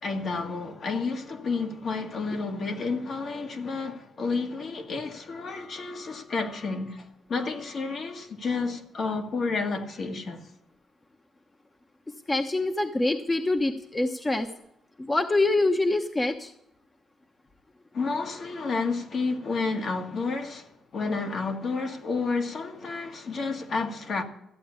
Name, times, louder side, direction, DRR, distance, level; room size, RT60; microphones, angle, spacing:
voice 1, 0.0-10.4 17.9-24.2, left 4 dB, 55° left, 1.9 m, -30 dB
voice 2, 12.3-14.5 15.0-16.5, left 2 dB, 20° left, 1.0 m, -25 dB
14.0 x 8.6 x 8.4 m
cardioid pair, 90°, 0 cm